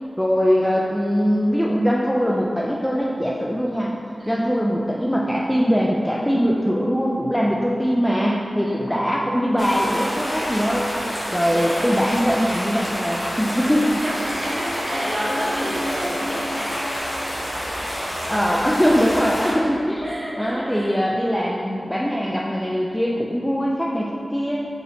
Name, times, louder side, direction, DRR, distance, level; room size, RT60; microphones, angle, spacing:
voice 1, 0.2-3.9 4.3-10.9 11.3-13.9 18.3-24.7, equal, 5° left, -3 dB, 0.3 m, -21 dB
voice 2, 8.6-8.9 11.5-11.9 13.5-13.7 14.0-16.8 20.0-21.0, equal, 30° right, -6 dB, 1.0 m, -30 dB
sound 1, 9.6-19.5, equal, 25° left, 1.4 m, -28 dB
4.9 x 4.0 x 2.6 m, 2.8 s
wide cardioid pair, 95°, 0 cm